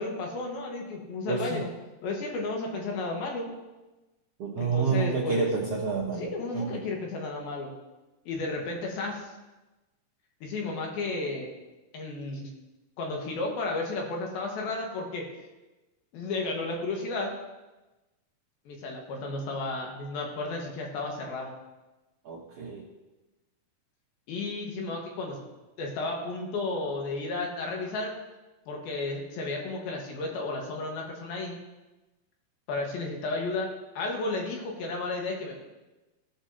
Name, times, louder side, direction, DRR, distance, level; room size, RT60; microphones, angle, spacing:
voice 1, 0.0-1.7 2.0-3.5 4.6-5.5 6.2-7.7 8.3-9.3 10.4-11.5 11.9-12.5 13.0-15.3 16.1-17.4 18.7-21.5 24.3-25.4 25.8-28.1 28.7-31.6 32.7-35.5, left 3 dB, 85° left, 0 dB, 3.3 m, -33 dB
voice 2, 1.3-1.6 4.4-6.9 22.2-22.9, right 5 dB, 70° right, -3 dB, 1.5 m, -29 dB
17.5 x 6.3 x 2.8 m, 1.1 s
omnidirectional pair, 4.2 m